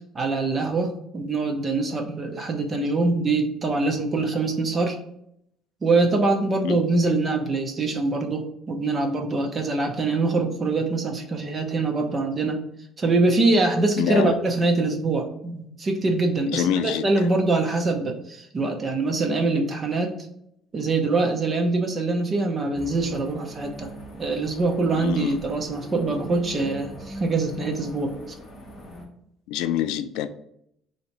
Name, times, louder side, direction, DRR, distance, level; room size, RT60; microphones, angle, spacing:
voice 1, 0.1-5.0 5.8-12.6 13.0-20.1 20.7-23.9 24.2-28.1, right 3 dB, 20° right, 0.6 m, -24 dB
voice 2, 14.0-14.3 16.5-17.3 24.9-25.4 29.5-30.3, left 10 dB, 90° left, 0.3 m, -26 dB
sound 1, 22.7-29.1, equal, 15° left, 1.0 m, -41 dB
4.0 x 2.8 x 4.5 m
cardioid pair, 170°, 0 cm